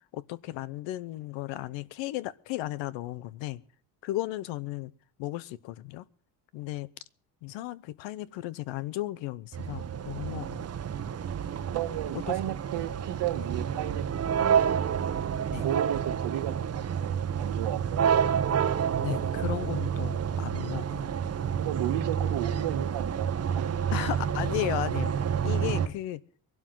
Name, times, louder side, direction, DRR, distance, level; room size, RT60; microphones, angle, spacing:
voice 1, 0.1-3.6 4.0-4.9 5.2-6.1 6.5-6.9 7.4-10.6 12.3-12.4 15.5-15.7 19.0-21.0 23.9-25.1 25.4-26.2, left 15 dB, 90° left, 0.9 m, -35 dB
sound 1, 9.5-25.9, right 8 dB, 35° right, 0.9 m, -29 dB
voice 2, 11.7-14.6 15.6-18.1 21.6-23.7, right 13 dB, 70° right, 1.4 m, -34 dB
22.5 x 12.0 x 3.8 m
cardioid pair, 130°, 44 cm